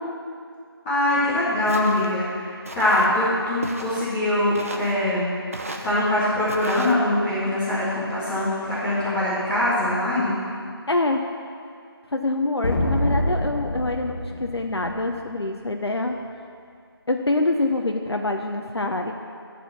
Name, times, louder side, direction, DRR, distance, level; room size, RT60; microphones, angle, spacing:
voice 1, 0.8-5.3 5.8-10.3, left 1 dB, 10° left, -13 dB, 1.2 m, -23 dB
Walk footsteps, 1.7-2.1 2.6-3.1 3.6-4.1 4.5-5.0 5.5-5.9 6.5-6.9, right 2 dB, 35° right, 0.5 m, -35 dB
voice 2, 10.9-11.2 12.1-16.1 17.1-19.1, left 2 dB, 85° left, 3 dB, 0.7 m, -25 dB
sound 1, 12.6-15.3, left 1 dB, 65° left, 1.0 m, -26 dB
11.0 x 4.3 x 6.9 m, 2.3 s
figure-of-eight pair, 165°, 13 cm